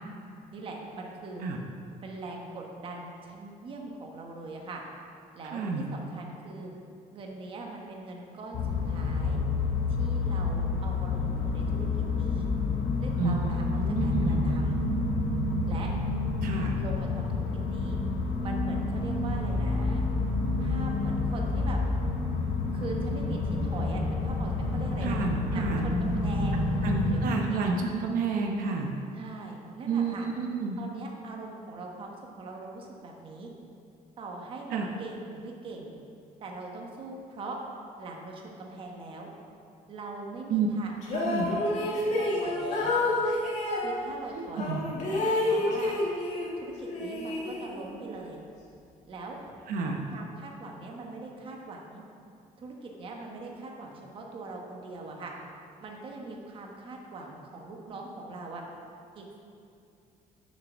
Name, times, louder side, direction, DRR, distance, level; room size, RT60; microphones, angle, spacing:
voice 1, 0.5-1.4 2.0-4.8 5.3-6.7 7.1-8.6 8.8-9.4 10.0-11.9 12.2-12.5 13.0-14.8 15.7-15.9 16.7-18.0 18.4-20.0 20.6-21.8 22.7-25.2 25.5-27.2 27.5-27.6 29.1-30.3 30.8-33.5 34.2-35.9 36.4-37.6 38.0-39.3 39.9-42.9 43.7-44.7 45.1-46.0 46.6-48.4 49.1-49.4 50.1-52.0 52.6-55.3 55.8-58.6 59.1-59.3, right 3 dB, 35° right, 0 dB, 1.1 m, -41 dB
voice 2, 5.5-5.9 13.2-13.4 13.7-14.4 16.4-16.8 25.0-25.9 26.8-28.9 29.9-30.8 34.7-34.9 40.5-40.7 41.2-41.5 44.4-44.8 49.7-50.0, right 4 dB, 75° right, 1 dB, 0.9 m, -30 dB
sound 1, 8.5-27.1, left 3 dB, 75° left, 1.3 m, -28 dB
sound 2, 41.0-43.9 44.6-46.5 46.9-48.0, left 2 dB, 55° left, 1.7 m, -29 dB
6.8 x 6.5 x 6.1 m, 2.5 s
cardioid pair, 175°, 15 cm